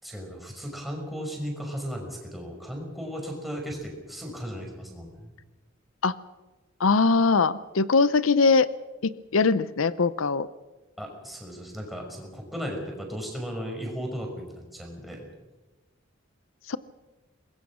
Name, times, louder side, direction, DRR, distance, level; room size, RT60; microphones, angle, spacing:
voice 1, 0.0-5.3 11.0-15.3, equal, ahead, 0 dB, 5.7 m, -36 dB
voice 2, 6.8-8.7 9.0-10.5 16.7-16.8, left 4 dB, 85° left, 16 dB, 0.7 m, -21 dB
24.0 x 21.0 x 6.3 m, 1.2 s
head